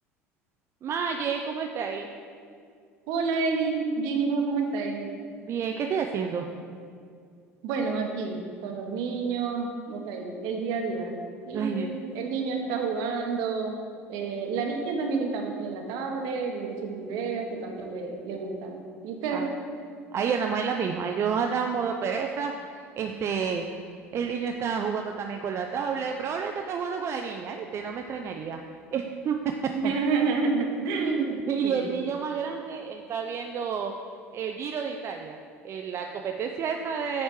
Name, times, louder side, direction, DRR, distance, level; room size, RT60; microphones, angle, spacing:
voice 1, 0.8-2.1 5.4-6.5 11.5-12.0 19.3-19.5 20.1-28.6 28.9-29.4 29.8-29.9 31.0-33.9 34.3-35.4 35.6-37.2, right 6 dB, 35° right, 3 dB, 0.4 m, -30 dB
voice 2, 3.1-5.1 7.6-11.2 11.4-13.7 14.1-19.5 29.7-31.4 31.6-31.9, right 4 dB, 55° right, 2 dB, 1.0 m, -29 dB
8.7 x 4.3 x 4.5 m, 2.2 s
figure-of-eight pair, 65°, 8 cm